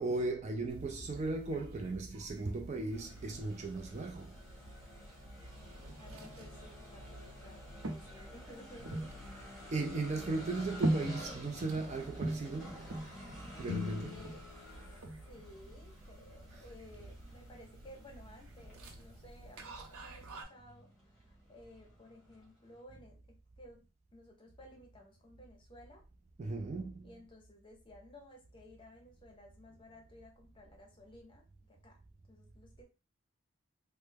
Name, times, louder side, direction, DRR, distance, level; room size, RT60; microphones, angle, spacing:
voice 1, 0.0-4.3 9.7-12.9 13.6-14.2 26.4-27.1, right 3 dB, 30° right, 0.3 m, -37 dB
sound 1, 0.7-20.4, right 1 dB, 90° right, 0.7 m, -44 dB
sound 2, 2.9-22.8, left 1 dB, ahead, 1.3 m, -53 dB
voice 2, 6.0-9.7 14.1-14.4 15.2-20.9 21.1-23.2 23.6-23.8 24.1-26.0 27.0-32.0 32.3-32.8, left 1 dB, 25° left, 0.7 m, -56 dB
Guitar, 13.6-16.2, left 8 dB, 80° left, 0.3 m, -45 dB
3.2 x 2.1 x 3.3 m
head